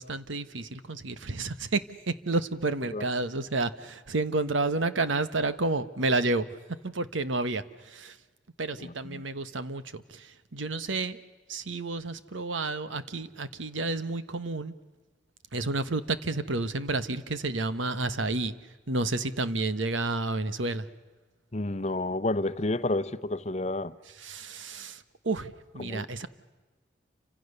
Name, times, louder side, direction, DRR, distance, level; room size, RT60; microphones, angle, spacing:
voice 1, 0.0-6.5 6.8-8.2 8.6-11.2 11.5-14.7 15.5-18.5 18.9-20.9 24.2-26.3, right 2 dB, 90° right, 1.2 m, -30 dB
voice 2, 8.8-9.2 21.5-23.9 25.8-26.1, left 2 dB, 35° left, 0.8 m, -30 dB
29.5 x 26.0 x 6.8 m
head